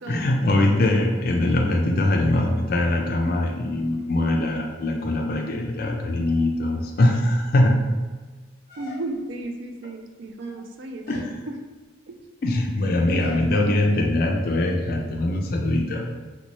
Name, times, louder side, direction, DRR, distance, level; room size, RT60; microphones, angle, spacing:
voice 1, 0.1-7.8 11.1-11.2 12.4-16.1, left 1 dB, 45° left, 1 dB, 0.4 m, -22 dB
sound 1, 8.7-9.4 10.2-10.7 11.0-11.4 13.2-13.5, left 2 dB, 50° right, 1.0 m, -43 dB
voice 2, 8.8-11.6 12.1-12.2, right 2 dB, 70° right, 4 dB, 0.4 m, -34 dB
4.0 x 2.2 x 3.0 m, 1.4 s
head